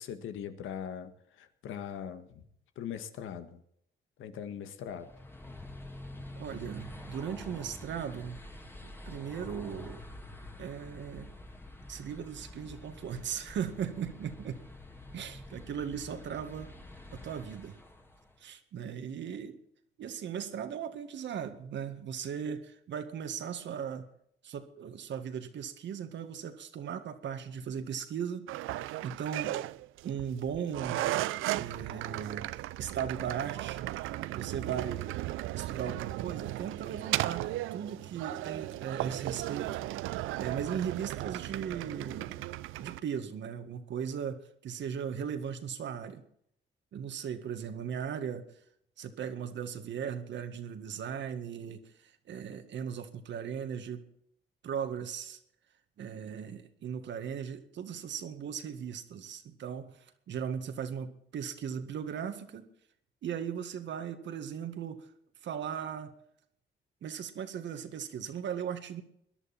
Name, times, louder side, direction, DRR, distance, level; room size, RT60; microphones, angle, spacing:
voice 1, 0.0-2.4 2.7-3.6 4.2-5.1, left 8 dB, 85° left, 9 dB, 1.7 m, -41 dB
sound 1, 4.9-18.4, left 1 dB, 10° left, 2.2 m, -47 dB
voice 2, 6.4-8.5 8.8-10.0 10.6-11.3 11.9-14.6 15.1-16.7 17.1-17.8 18.4-19.6 20.0-24.1 24.4-28.5 29.0-29.6 30.0-31.0 31.5-33.8 34.4-35.0 35.5-39.8 40.4-42.5 42.8-46.2 46.9-48.4 49.0-54.1 54.6-55.4 56.0-59.9 60.3-62.6 63.2-65.1 65.4-66.1 67.0-69.0, right 8 dB, 65° right, 8 dB, 1.9 m, -38 dB
sound 2, 28.5-43.0, right 16 dB, 90° right, 0.5 m, -36 dB
21.5 x 11.0 x 4.3 m, 0.69 s
cardioid pair, 90°, 20 cm